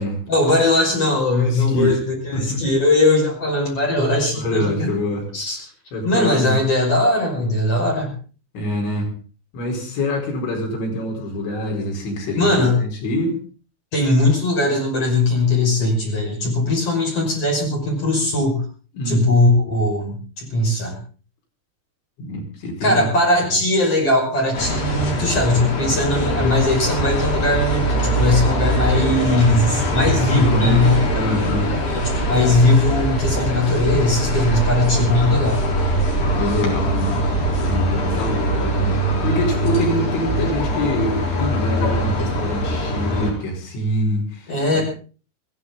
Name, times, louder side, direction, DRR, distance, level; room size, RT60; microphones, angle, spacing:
voice 1, 0.3-4.9 5.3-5.6 6.0-8.1 12.3-12.8 13.9-18.6 19.0-21.0 22.8-31.3 32.3-35.6 44.5-44.8, left 2 dB, 35° left, -1 dB, 6.4 m, -19 dB
voice 2, 1.3-2.0 2.3-2.6 4.4-5.2 5.9-6.6 8.6-9.1 9.5-13.4 19.0-19.3 22.2-23.1 30.3-30.8 31.1-31.7 36.4-37.1 37.6-44.8, equal, 80° left, 0 dB, 6.9 m, -25 dB
sound 1, 24.5-43.3, equal, 50° left, 5.4 m, -22 dB
22.0 x 15.0 x 3.9 m, 0.38 s
omnidirectional pair, 5.1 m